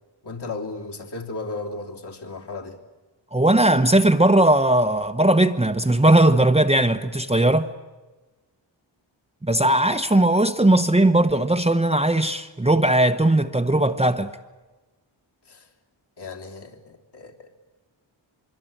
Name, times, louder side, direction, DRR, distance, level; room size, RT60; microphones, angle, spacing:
voice 1, 0.2-2.8 15.4-15.7 16.2-17.5, left 3 dB, 60° left, 3.4 m, -35 dB
voice 2, 3.3-7.7 9.4-14.3, right 1 dB, 15° right, 1.0 m, -18 dB
24.0 x 23.5 x 8.8 m
wide cardioid pair, 85°, 46 cm